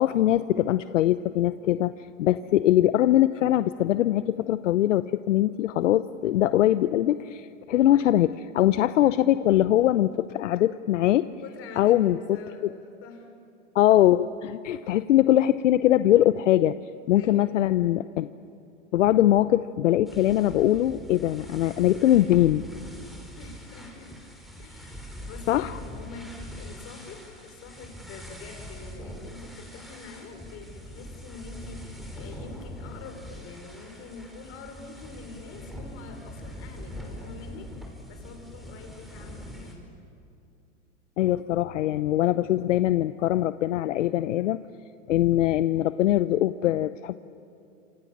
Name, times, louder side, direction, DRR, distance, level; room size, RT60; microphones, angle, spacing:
voice 1, 0.0-1.9 2.2-11.3 11.8-12.4 13.7-16.7 17.1-18.3 18.9-22.6 25.5-25.8 41.2-44.6 45.1-47.2, left 13 dB, 75° left, 13 dB, 0.8 m, -22 dB
voice 2, 11.4-12.7 13.0-13.3 17.1-17.5 23.4-24.2 24.6-37.7 38.1-39.9, left 4 dB, 35° left, 5 dB, 5.6 m, -45 dB
sound 1, 20.1-39.7, equal, ahead, 5.5 m, -42 dB
27.5 x 27.0 x 7.4 m, 2.7 s
hypercardioid pair, 120°, 38 cm